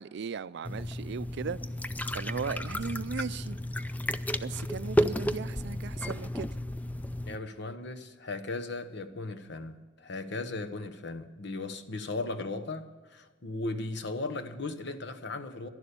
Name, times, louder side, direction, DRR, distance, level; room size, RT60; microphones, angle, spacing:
voice 1, 0.0-1.6 2.1-3.6 4.4-6.5, right 6 dB, 60° right, 0.4 m, -37 dB
sound 1, 0.6-7.4, equal, 10° left, 0.4 m, -32 dB
voice 2, 7.2-15.7, left 2 dB, 65° left, 1.0 m, -37 dB
11.5 x 11.0 x 6.8 m
head